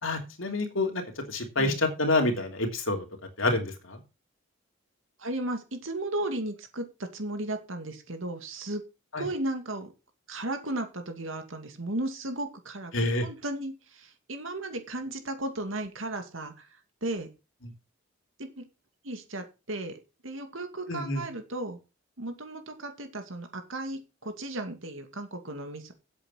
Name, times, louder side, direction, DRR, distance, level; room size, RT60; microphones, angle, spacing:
voice 1, 0.0-3.0 3.4-4.0 9.1-9.2 12.9-13.2 20.9-21.2, left 2 dB, 70° left, 3 dB, 3.1 m, -28 dB
voice 2, 5.2-8.8 9.2-9.9 10.3-16.7 17.0-17.3 18.4-18.6 19.0-21.8 22.2-25.9, right 1 dB, 70° right, 6 dB, 2.4 m, -35 dB
8.8 x 8.4 x 5.8 m, 0.29 s
head